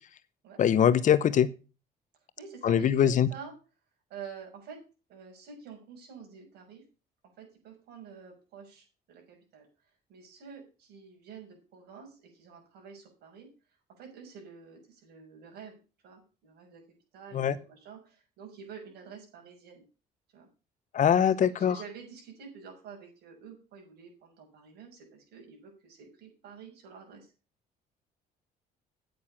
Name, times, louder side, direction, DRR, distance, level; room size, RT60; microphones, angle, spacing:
voice 1, 0.6-1.5 2.6-3.3 17.3-17.6 20.9-21.8, left 9 dB, 50° left, 16 dB, 0.9 m, -22 dB
voice 2, 2.4-3.5 4.1-4.8 5.1-6.8 7.4-9.7 10.1-13.5 14.0-15.8 16.0-16.8 17.1-19.8 20.3-20.5 21.2-27.3, right 6 dB, 75° right, 1 dB, 6.5 m, -48 dB
9.5 x 8.8 x 5.8 m, 0.33 s
cardioid pair, 110°, 17 cm